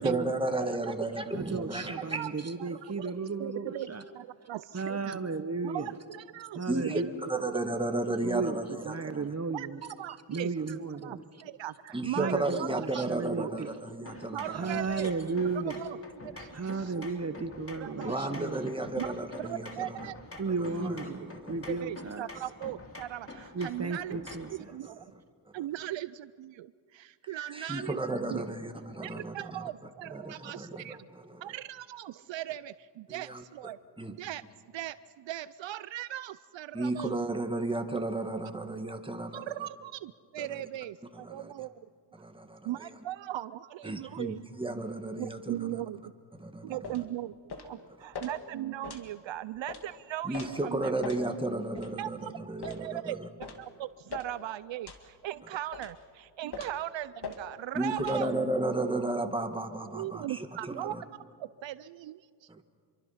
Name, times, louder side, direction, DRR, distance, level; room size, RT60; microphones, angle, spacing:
voice 1, 0.0-2.2 6.7-7.0 7.3-9.2 11.9-14.7 16.6-16.7 18.0-20.1 20.6-21.5 27.3-29.7 30.1-31.4 33.1-33.4 34.0-34.2 36.7-39.4 40.4-40.5 41.2-41.5 42.1-42.6 43.8-45.8 46.3-46.8 50.2-53.3 57.7-61.0 62.5-62.6, right 2 dB, 10° right, 6 dB, 1.8 m, -33 dB
voice 2, 0.5-0.9 2.1-2.3 2.6-3.1 3.4-5.2 5.6-7.0 7.3-7.4 9.5-9.7 10.0-12.8 13.4-13.7 14.3-15.1 15.6-16.0 16.2-17.1 17.8-18.1 19.0-19.1 19.4-20.4 21.7-24.2 24.5-25.0 25.5-28.4 29.0-31.1 31.4-33.8 34.1-34.4 34.7-37.2 38.7-38.8 39.3-41.7 42.6-44.4 45.2-46.1 46.6-47.4 47.6-50.9 51.3-51.4 52.0-52.4 52.6-53.2 53.6-58.3 59.9-61.0 61.4-62.6, right 13 dB, 70° right, 16 dB, 0.5 m, -39 dB
voice 3, 1.3-4.0 4.7-5.9 6.5-7.1 8.2-9.8 10.3-11.2 12.1-13.8 14.1-14.2 14.5-15.8 16.5-18.7 20.4-22.3 23.5-24.5, right 4 dB, 35° right, 10 dB, 1.1 m, -34 dB
sound 1, 14.1-24.6, left 2 dB, 30° left, 2.5 m, -47 dB
sound 2, 46.8-47.0 47.5-47.7 48.1-48.3 48.8-49.1 49.7-49.8 50.3-50.5 51.0-51.2 51.8-51.9 52.6-52.8 53.4-53.6 54.1-54.3 54.9-55.1 55.7-56.0 56.5-56.8 57.2-57.4 58.0-58.2, left 4 dB, 55° left, 2.2 m, -41 dB
26.5 x 23.5 x 5.7 m, 2.1 s
cardioid pair, 85°, 46 cm